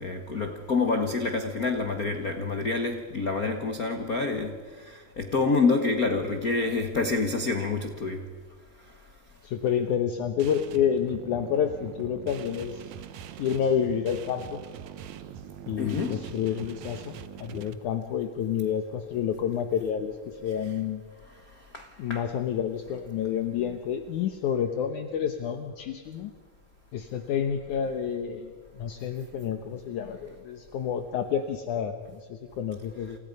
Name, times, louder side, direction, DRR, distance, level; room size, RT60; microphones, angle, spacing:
voice 1, 0.0-8.3 15.8-16.2 21.7-22.3, left 3 dB, 85° left, 0.8 m, -27 dB
voice 2, 9.4-12.9 13.4-14.6 15.7-21.0 22.0-26.3 26.9-33.2, left 8 dB, 70° left, 2.5 m, -29 dB
sound 1, 10.4-17.7, right 10 dB, 65° right, 2.1 m, -43 dB
29.0 x 29.0 x 5.4 m
omnidirectional pair, 3.9 m